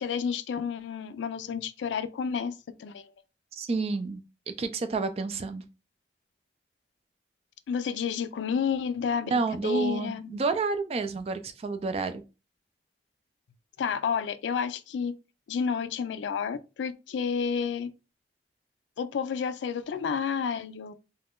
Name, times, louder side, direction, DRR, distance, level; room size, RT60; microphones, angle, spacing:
voice 1, 0.0-3.1 7.7-10.4 13.8-15.2 15.5-17.9 19.0-20.9, left 6 dB, 90° left, 0.3 m, -30 dB
voice 2, 3.5-4.2 4.5-5.6 9.3-12.2, right 4 dB, 35° right, 0.3 m, -29 dB
2.4 x 2.2 x 3.5 m
head